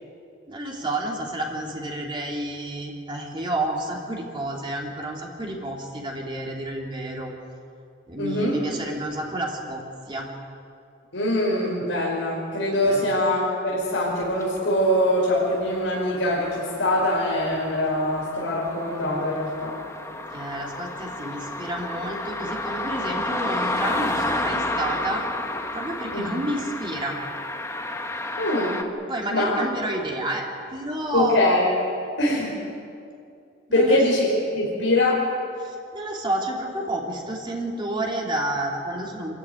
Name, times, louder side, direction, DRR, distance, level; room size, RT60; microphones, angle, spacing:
voice 1, 0.5-7.3 8.1-10.3 12.8-13.1 20.3-25.3 25.7-27.2 29.1-31.6 33.7-34.0 35.6-39.4, right 1 dB, 25° right, -2 dB, 3.1 m, -30 dB
voice 2, 8.2-8.6 11.1-19.7 26.1-26.3 28.4-28.8 29.3-29.5 31.1-31.7 32.2-32.5 33.7-34.3 34.5-35.2, left 1 dB, 80° left, -5 dB, 5.1 m, -23 dB
sound 1, 14.2-28.8, left 2 dB, 15° left, 1.4 m, -32 dB
27.5 x 13.5 x 9.5 m, 2.5 s
head